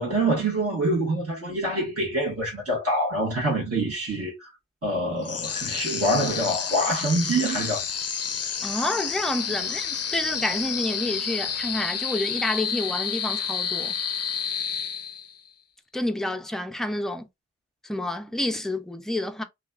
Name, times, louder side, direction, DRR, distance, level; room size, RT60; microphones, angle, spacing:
voice 1, 0.0-4.5 4.8-7.8, right 1 dB, 50° right, 1.5 m, -25 dB
sound 1, 5.2-15.5, left 7 dB, 55° left, 0.5 m, -30 dB
voice 2, 8.6-14.0 15.9-17.3 17.8-19.4, left 1 dB, ahead, 0.5 m, -29 dB
3.2 x 2.3 x 2.4 m
cardioid pair, 65°, 30 cm